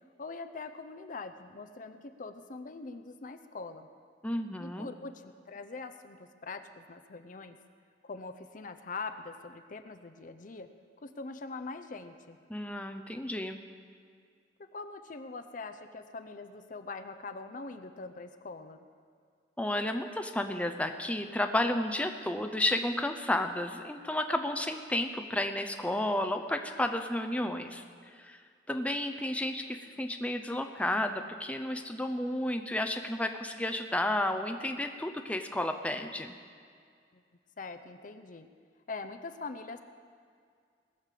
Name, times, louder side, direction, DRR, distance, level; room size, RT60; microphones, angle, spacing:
voice 1, 0.2-3.9 4.6-7.6 8.0-10.7 11.0-12.4 14.6-18.8 37.1-37.2 37.6-38.5 38.9-39.8, left 3 dB, 50° left, 8 dB, 0.7 m, -43 dB
voice 2, 4.2-4.9 12.5-13.6 19.6-27.8 28.2-28.4 28.7-36.3, left 1 dB, 10° left, 6 dB, 0.6 m, -32 dB
20.0 x 6.6 x 7.5 m, 2.2 s
head